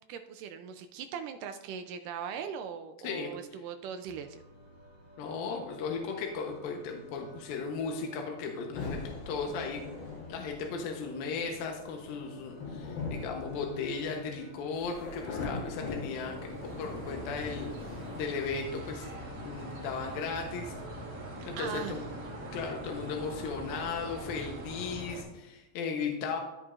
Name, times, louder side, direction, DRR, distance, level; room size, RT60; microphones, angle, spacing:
voice 1, 0.1-4.4 21.6-22.1, right 7 dB, 80° right, 7 dB, 1.9 m, -40 dB
sound 1, 4.1-23.9, equal, 25° left, 0.5 m, -54 dB
voice 2, 5.2-9.0 9.3-9.8 10.3-16.4 16.8-20.7 21.4-22.0 22.5-26.4, left 5 dB, 80° left, 2 dB, 2.7 m, -36 dB
sound 2, 8.7-18.2, left 3 dB, 60° left, 3.3 m, -41 dB
sound 3, 15.7-25.2, right 1 dB, 45° right, 4.0 m, -43 dB
15.0 x 5.2 x 2.4 m, 1.0 s
omnidirectional pair, 4.2 m